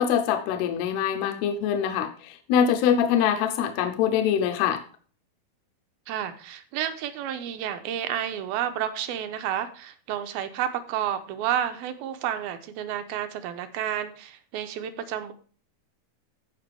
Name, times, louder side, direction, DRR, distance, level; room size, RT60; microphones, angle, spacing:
voice 1, 0.0-4.8, left 8 dB, 85° left, 7 dB, 2.7 m, -24 dB
voice 2, 6.1-15.3, right 10 dB, 80° right, 8 dB, 2.5 m, -30 dB
14.5 x 5.2 x 3.4 m, 0.42 s
omnidirectional pair, 4.5 m